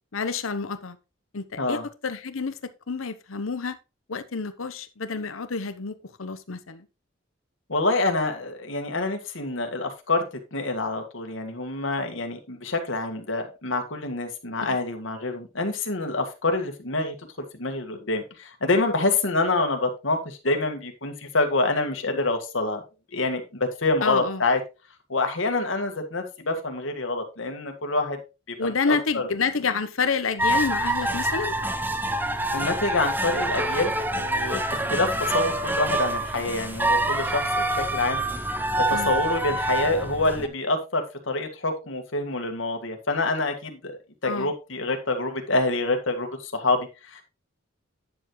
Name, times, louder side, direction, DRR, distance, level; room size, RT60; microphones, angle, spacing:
voice 1, 0.1-1.0 1.3-3.8 4.1-5.9 6.2-6.9 14.6-14.7 24.0-24.4 28.6-31.6 38.9-39.1 44.2-44.5, left 5 dB, 90° left, 0.9 m, -29 dB
voice 2, 7.7-10.2 10.5-17.1 17.6-22.8 23.1-24.6 25.1-28.2 28.6-29.3 32.5-38.2 38.8-43.9 44.2-47.2, left 2 dB, 70° left, 1.8 m, -26 dB
sound 1, 30.4-40.5, right 1 dB, 10° right, 0.7 m, -26 dB
9.8 x 7.0 x 3.1 m
head